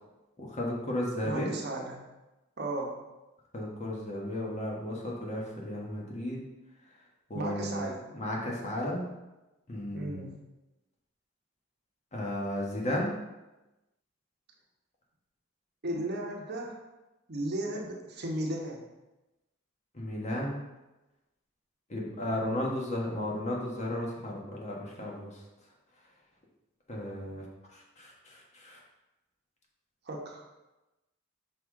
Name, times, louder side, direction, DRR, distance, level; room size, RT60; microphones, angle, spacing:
voice 1, 0.4-1.6 3.5-6.4 7.3-7.8 8.1-9.1 9.7-10.2 12.1-13.1 19.9-20.6 21.9-25.3 26.9-27.4 27.7-28.8, left 1 dB, 35° left, -2 dB, 1.2 m, -34 dB
voice 2, 1.2-2.0 2.6-3.0 7.3-8.1 9.9-10.4 15.8-16.8 17.3-18.8 30.0-30.4, right 1 dB, 50° right, 0 dB, 1.0 m, -35 dB
5.9 x 4.8 x 3.7 m, 1.0 s
head